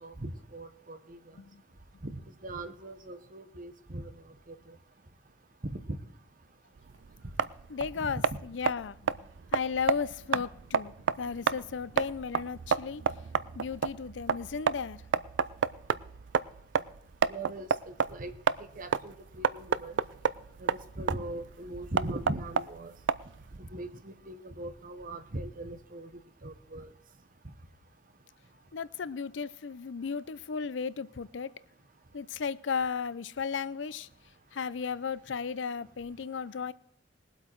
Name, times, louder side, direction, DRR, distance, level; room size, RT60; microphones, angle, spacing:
voice 1, 0.0-1.2 2.1-4.1 4.5-4.8 5.6-6.0 8.0-8.2 17.3-18.3 18.8-20.0 20.6-22.9 23.6-26.1 26.4-26.9, right 1 dB, 50° right, 10 dB, 1.1 m, -40 dB
sound 1, 6.8-23.6, right 6 dB, 75° right, 0.4 m, -31 dB
voice 2, 7.7-9.1 9.5-13.0 13.6-15.0 28.7-31.5 32.1-34.1 34.5-36.7, left 6 dB, 85° left, 18 dB, 0.5 m, -35 dB
20.0 x 8.0 x 4.6 m, 0.75 s
head